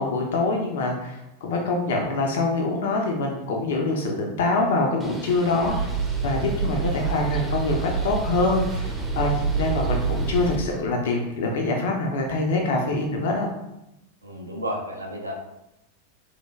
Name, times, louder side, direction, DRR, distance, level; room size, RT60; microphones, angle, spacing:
voice 1, 0.0-6.0 6.2-13.5, left 2 dB, 60° left, 1 dB, 0.4 m, -25 dB
Bird, 5.0-10.6, right 1 dB, 10° right, 0.4 m, -39 dB
sound 1, 5.6-10.6, right 5 dB, 55° right, 0.7 m, -27 dB
voice 2, 14.2-15.3, equal, 85° right, 0 dB, 0.4 m, -32 dB
3.1 x 2.1 x 2.2 m, 0.89 s
figure-of-eight pair, 90°, 0 cm